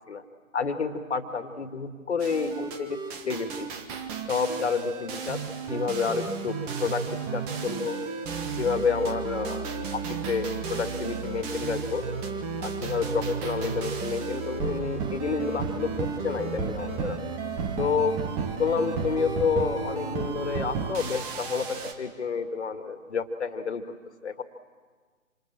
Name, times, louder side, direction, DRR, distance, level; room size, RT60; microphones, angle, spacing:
voice 1, 0.5-3.7 4.3-5.4 5.7-7.1 7.3-8.0 8.6-12.1 12.6-15.9 16.2-17.2 17.8-18.1 18.6-23.8 24.2-24.4, left 5 dB, 55° left, 8 dB, 2.2 m, -29 dB
sound 1, 2.2-21.9, right 5 dB, 15° right, 1.3 m, -33 dB
27.5 x 27.0 x 7.6 m, 1.5 s
figure-of-eight pair, 140°, 41 cm